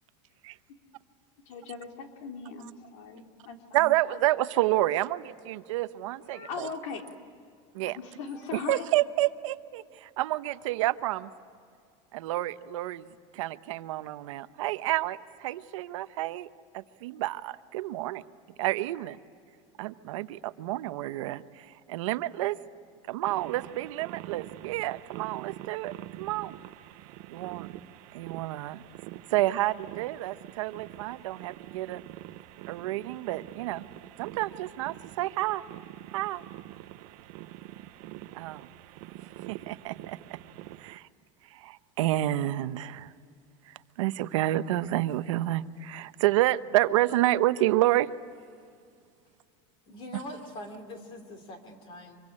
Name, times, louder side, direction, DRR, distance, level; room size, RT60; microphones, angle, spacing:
voice 1, 1.5-3.9 4.8-4.9 6.3-7.0 7.9-8.8, left 5 dB, 75° left, 3 dB, 3.3 m, -39 dB
voice 2, 3.7-6.7 7.7-8.0 8.5-11.3 12.1-16.5 16.7-18.2 18.6-19.2 19.8-22.6 23.1-25.9 26.2-26.6 27.3-27.7 28.1-28.8 29.3-32.0 32.7-33.8 34.2-35.6 36.1-36.4 38.3-38.7 39.5-40.4 40.8-41.1 41.5-43.1 43.7-48.1, right 15 dB, 85° right, 12 dB, 0.9 m, -29 dB
sound 1, 23.2-41.0, right 15 dB, 50° right, 0.8 m, -45 dB
voice 3, 49.9-52.2, left 1 dB, 30° left, 6 dB, 2.9 m, -43 dB
25.5 x 23.0 x 9.8 m, 2.2 s
supercardioid pair, 170°, 16 cm